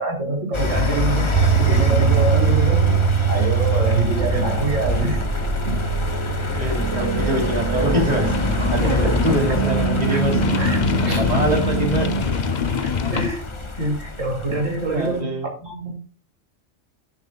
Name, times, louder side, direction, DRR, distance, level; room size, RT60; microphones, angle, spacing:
voice 1, 0.0-3.0 3.3-5.2 5.6-5.8 8.8-9.2 9.5-9.6 10.1-11.2 12.8-13.4 13.8-15.9, right 2 dB, 80° right, 3.7 m, -25 dB
sound 1, 0.5-15.2, left 2 dB, 25° left, 1.1 m, -27 dB
sound 2, 1.3-12.2, right 7 dB, 65° right, 0.9 m, -23 dB
voice 2, 6.5-10.4 11.0-12.1 14.9-15.5, right 1 dB, 30° right, 3.4 m, -24 dB
sound 3, 8.2-13.3, left 6 dB, 40° left, 0.8 m, -24 dB
15.0 x 8.2 x 2.4 m
omnidirectional pair, 1.3 m